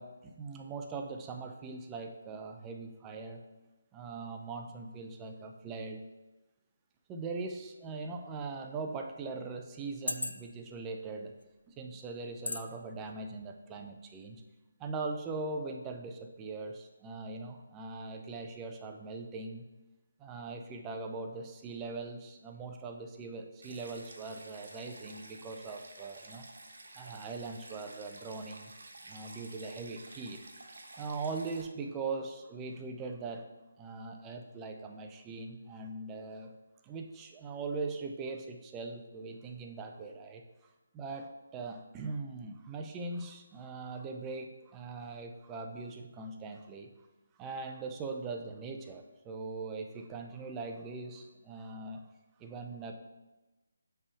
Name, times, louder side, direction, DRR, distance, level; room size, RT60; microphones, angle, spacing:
voice 1, 0.0-3.4 3.9-6.0 7.1-11.3 11.7-14.4 14.8-19.6 20.2-26.4 27.0-28.7 29.1-30.4 30.9-33.5 33.8-36.5 36.8-40.4 40.9-46.9 47.4-52.0 52.4-52.9, right 3 dB, 15° right, 3 dB, 0.6 m, -41 dB
sound 1, 8.0-8.1 8.9-9.0 9.8-10.7 11.4-11.6 12.5-12.7 13.1-13.2, left 2 dB, 75° left, 0.4 m, -36 dB
Stream, 23.6-31.6, right 2 dB, 70° right, 1.2 m, -51 dB
7.2 x 3.5 x 4.9 m, 1.1 s
figure-of-eight pair, 155°, 0 cm